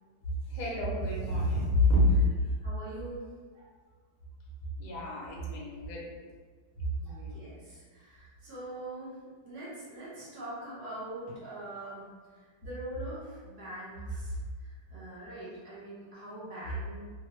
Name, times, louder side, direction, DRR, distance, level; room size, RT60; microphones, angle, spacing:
voice 1, 0.5-2.3 4.8-6.0 6.8-6.9, left 1 dB, 60° left, -4 dB, 1.2 m, -27 dB
voice 2, 2.6-3.2 3.5-3.7 7.0-9.2 9.4-12.1 12.3-17.0, right 1 dB, 60° right, -8 dB, 1.4 m, -43 dB
3.2 x 2.1 x 3.0 m, 1.5 s
omnidirectional pair, 2.1 m